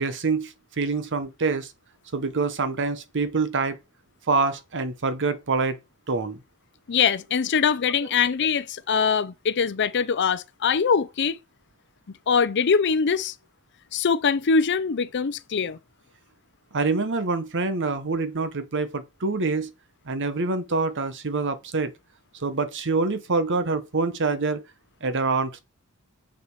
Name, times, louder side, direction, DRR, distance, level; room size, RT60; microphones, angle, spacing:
voice 1, 0.0-1.7 2.1-3.8 4.3-5.8 6.1-6.4 16.7-19.7 20.1-21.9 22.4-24.6 25.0-25.6, right 4 dB, 55° right, 0.9 m, -26 dB
voice 2, 6.9-11.4 12.3-13.3 13.9-15.8, left 6 dB, 50° left, 0.5 m, -23 dB
7.0 x 6.5 x 4.7 m
head